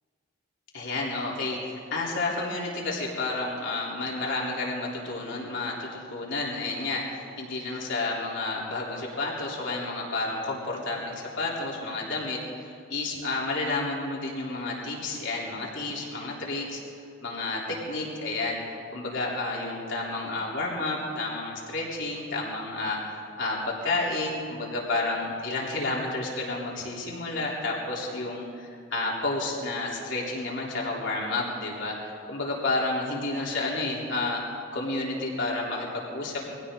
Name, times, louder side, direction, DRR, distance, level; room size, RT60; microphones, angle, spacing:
voice 1, 0.7-16.8 17.2-28.5 28.9-34.4 34.7-36.5, left 2 dB, 65° left, -4 dB, 3.5 m, -31 dB
22.5 x 16.5 x 3.8 m, 2.4 s
head